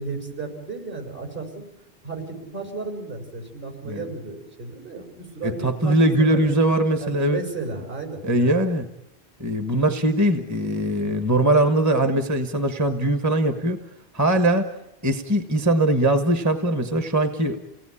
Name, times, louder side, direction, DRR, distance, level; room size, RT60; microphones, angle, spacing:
voice 1, 0.0-1.7 2.0-6.5 7.0-8.5, right 3 dB, 55° right, 4 dB, 6.4 m, -34 dB
voice 2, 5.4-7.4 8.2-8.9 9.4-13.8 14.1-14.7 15.0-17.6, right 1 dB, 15° right, 7 dB, 1.4 m, -21 dB
29.0 x 18.5 x 9.9 m, 0.93 s
omnidirectional pair, 1.1 m